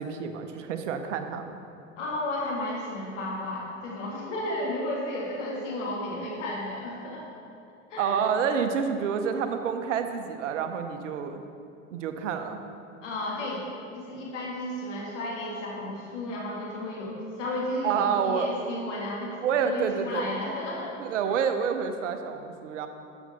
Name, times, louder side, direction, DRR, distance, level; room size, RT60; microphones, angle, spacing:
voice 1, 0.0-1.5 8.0-11.4 11.9-12.6 17.8-18.5 19.4-20.3 21.0-22.9, right 7 dB, 70° right, 7 dB, 0.9 m, -28 dB
voice 2, 2.0-7.3 7.9-8.2 13.0-13.6 13.9-20.9, left 1 dB, 70° left, -4 dB, 2.0 m, -33 dB
12.0 x 7.0 x 4.1 m, 2.6 s
figure-of-eight pair, 70°, 38 cm